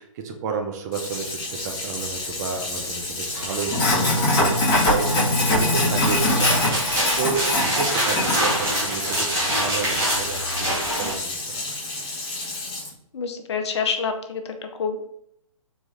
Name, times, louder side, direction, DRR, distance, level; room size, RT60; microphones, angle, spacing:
voice 1, 0.0-11.7, right 5 dB, 30° right, 4 dB, 0.6 m, -31 dB
Sink (filling or washing), 0.9-12.9, left 2 dB, 20° left, 1.4 m, -25 dB
sound 1, 1.3-6.8, right 1 dB, 75° right, 1.7 m, -40 dB
sound 2, 5.8-11.2, right 1 dB, 15° right, 1.2 m, -25 dB
voice 2, 13.1-15.1, left 5 dB, 50° left, 6 dB, 0.6 m, -27 dB
4.1 x 3.0 x 3.6 m, 0.74 s
hypercardioid pair, 140°, 18 cm